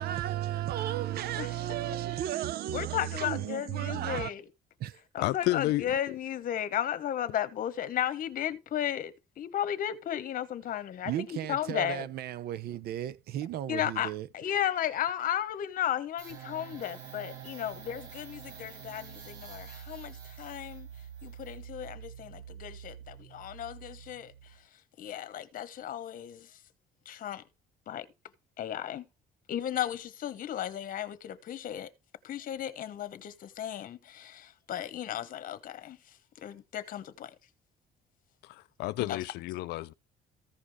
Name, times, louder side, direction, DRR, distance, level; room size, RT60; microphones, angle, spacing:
voice 1, 0.0-4.3 4.8-5.0 11.0-14.3, right 12 dB, 70° right, 0.8 m, -34 dB
voice 2, 2.7-4.4 5.1-12.1 13.7-20.9 21.2-24.3 25.0-26.5 27.0-27.4 27.9-28.1 28.6-29.0 29.5-31.9 32.2-36.0 36.4-37.3 39.0-39.2, left 10 dB, 55° left, 1.2 m, -34 dB
voice 3, 5.2-5.9 38.4-39.9, left 17 dB, 85° left, 0.5 m, -31 dB
sound 1, 16.2-24.6, right 8 dB, 90° right, 6.7 m, -47 dB
14.5 x 5.0 x 5.0 m
cardioid pair, 110°, 17 cm